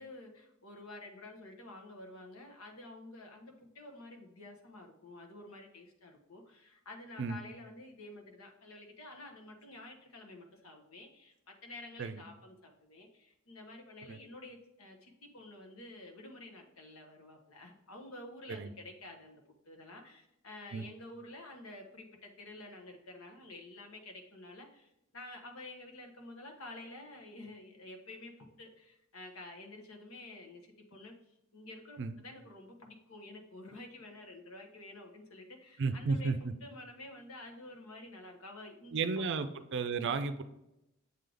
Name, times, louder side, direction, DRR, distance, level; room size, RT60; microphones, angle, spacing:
voice 1, 0.0-30.6 30.9-31.1 31.5-39.3 39.9-40.1, left 2 dB, 80° left, 2 dB, 1.1 m, -50 dB
voice 2, 35.8-36.4 38.9-40.4, right 4 dB, 60° right, 10 dB, 0.5 m, -33 dB
7.4 x 3.9 x 3.3 m, 0.87 s
head